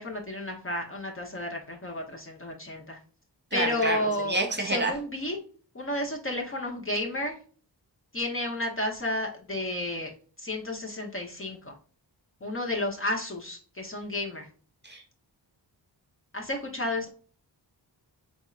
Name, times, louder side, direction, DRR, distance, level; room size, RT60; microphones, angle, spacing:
voice 1, 0.0-3.0 3.5-5.4 5.7-7.4 8.1-10.1 10.4-11.7 12.4-14.5 16.3-17.1, left 1 dB, 30° left, 0 dB, 0.9 m, -32 dB
voice 2, 3.5-4.9 14.8-15.0, right 2 dB, 25° right, 3 dB, 1.1 m, -28 dB
4.2 x 3.5 x 2.4 m, 0.43 s
wide cardioid pair, 95°, 44 cm